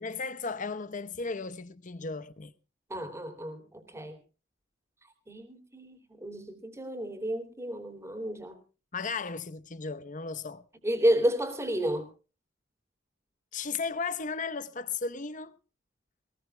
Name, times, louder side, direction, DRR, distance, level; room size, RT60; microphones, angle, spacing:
voice 1, 0.0-2.5 8.9-10.6 13.5-15.6, left 4 dB, 40° left, 0.9 m, -35 dB
voice 2, 2.9-4.2 5.3-8.6 10.8-12.1, equal, 15° right, 3.1 m, -31 dB
21.5 x 19.5 x 2.3 m
head